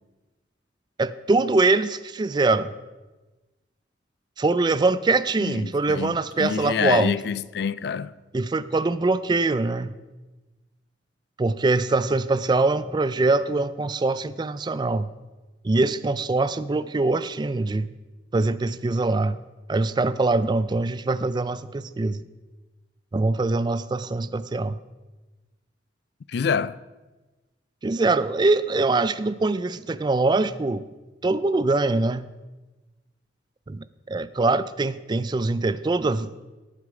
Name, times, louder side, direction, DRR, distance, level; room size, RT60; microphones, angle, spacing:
voice 1, 1.0-2.7 4.4-7.1 8.3-10.0 11.4-15.1 15.6-17.9 18.3-19.4 19.7-22.2 23.1-24.7 27.8-30.8 31.2-32.3 33.7-36.3, right 3 dB, 25° right, 0.3 m, -23 dB
voice 2, 5.4-8.1 26.3-26.8, left 6 dB, 60° left, 0.4 m, -27 dB
18.0 x 6.5 x 5.0 m
head